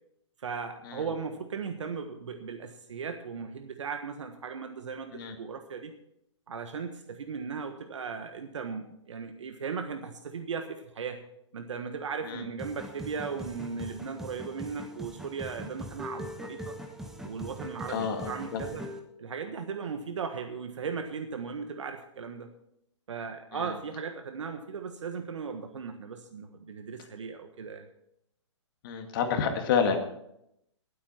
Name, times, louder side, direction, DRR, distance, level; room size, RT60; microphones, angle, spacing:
voice 1, 0.4-5.9 6.5-11.2 11.5-16.8 17.2-18.8 19.2-22.5 23.1-27.9, right 5 dB, 75° right, 6 dB, 1.4 m, -37 dB
sound 1, 12.6-19.0, equal, 5° right, 1.1 m, -41 dB
voice 2, 17.9-18.6 23.5-23.7 28.8-30.0, left 6 dB, 45° left, 5 dB, 2.2 m, -29 dB
19.0 x 8.6 x 4.4 m, 0.79 s
hypercardioid pair, 145°, 16 cm